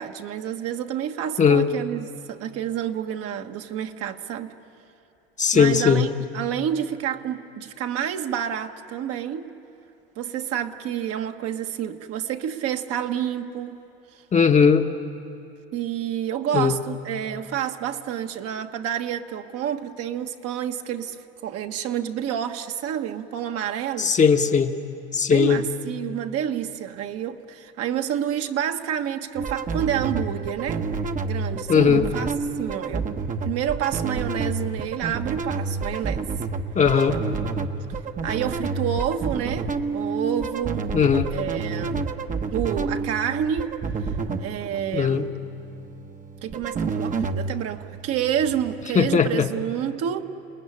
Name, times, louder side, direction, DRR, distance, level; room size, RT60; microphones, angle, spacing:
voice 1, 0.0-4.6 5.5-9.5 10.2-13.8 15.7-21.2 21.4-24.1 25.3-30.9 31.2-33.1 33.4-36.3 38.2-40.9 41.3-42.0 42.5-43.8 44.4-45.3 46.4-50.2, right 9 dB, 50° right, 1.4 m, -29 dB
voice 2, 5.4-6.0 14.3-14.9 16.5-16.8 24.0-24.7 25.1-25.6 31.7-32.1 36.7-37.2 40.9-41.3 44.9-45.3 48.9-49.5, left 6 dB, 25° left, 1.1 m, -18 dB
sound 1, 29.4-48.9, right 4 dB, 25° right, 1.0 m, -29 dB
29.0 x 20.0 x 9.9 m
supercardioid pair, 115°, 31 cm